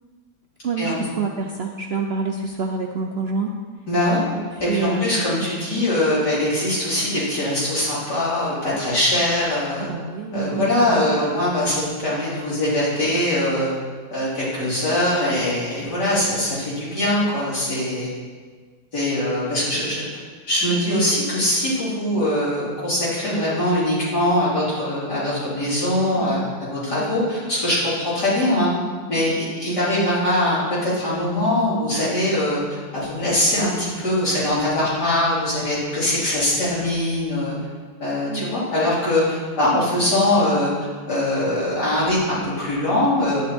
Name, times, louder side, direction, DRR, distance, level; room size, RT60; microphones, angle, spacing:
voice 1, 0.6-3.6 4.3-5.5 9.9-11.2 26.1-26.4 26.9-27.0 38.3-38.5 39.7-39.9, right 4 dB, 55° right, 1 dB, 0.7 m, -27 dB
voice 2, 3.9-4.2 4.6-9.9 10.3-13.7 14.1-18.1 18.9-20.0 20.5-28.7 29.1-37.6 38.0-40.7 41.1-43.4, left 1 dB, 75° left, -9 dB, 4.6 m, -22 dB
11.0 x 9.9 x 4.3 m, 1.5 s
omnidirectional pair, 1.8 m